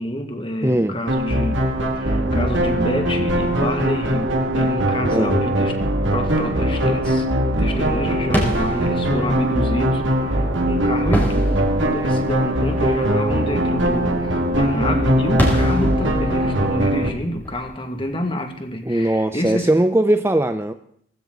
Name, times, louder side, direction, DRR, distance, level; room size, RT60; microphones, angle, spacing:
voice 1, 0.0-1.7 1.9-5.8 6.1-7.3 7.6-19.7, equal, 25° left, 5 dB, 2.1 m, -28 dB
voice 2, 0.6-1.0 5.1-5.4 18.8-20.7, right 1 dB, 15° right, 9 dB, 0.6 m, -19 dB
sound 1, 1.1-17.1, equal, 80° right, 2.4 m, -21 dB
sound 2, 8.2-18.8, equal, 10° left, 4.6 m, -29 dB
18.5 x 16.0 x 4.0 m, 0.67 s
head